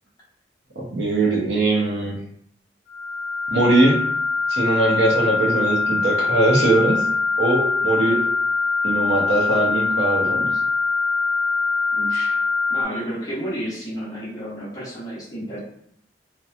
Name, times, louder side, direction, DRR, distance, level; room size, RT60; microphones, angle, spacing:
voice 1, 0.8-2.2 3.5-4.0 4.5-7.0 7.4-8.2 8.8-10.5, right 2 dB, 75° right, -2 dB, 0.7 m, -20 dB
sound 1, 2.9-12.8, left 4 dB, 65° left, 0.5 m, -23 dB
voice 2, 12.0-12.4 12.7-15.6, equal, 20° left, -8 dB, 0.7 m, -31 dB
2.9 x 2.2 x 2.4 m, 0.68 s
head